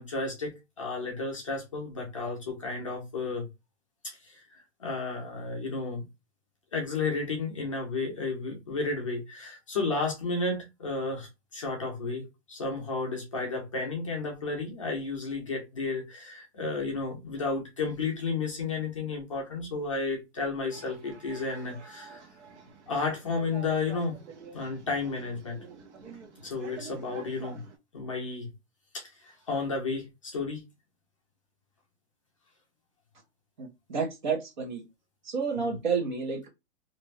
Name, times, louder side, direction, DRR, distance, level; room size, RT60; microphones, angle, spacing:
voice 1, 0.0-3.5 4.0-6.0 6.7-22.2 22.9-24.2 24.5-25.6 26.4-27.6 27.9-28.5 28.9-30.6 35.6-35.8, left 3 dB, 30° left, 0.5 m, -32 dB
sound 1, 20.7-27.8, right 5 dB, 75° right, 0.9 m, -48 dB
voice 2, 33.6-34.8 35.3-36.5, right 5 dB, 45° right, 0.7 m, -30 dB
2.5 x 2.1 x 3.1 m
hypercardioid pair, 180°, 34 cm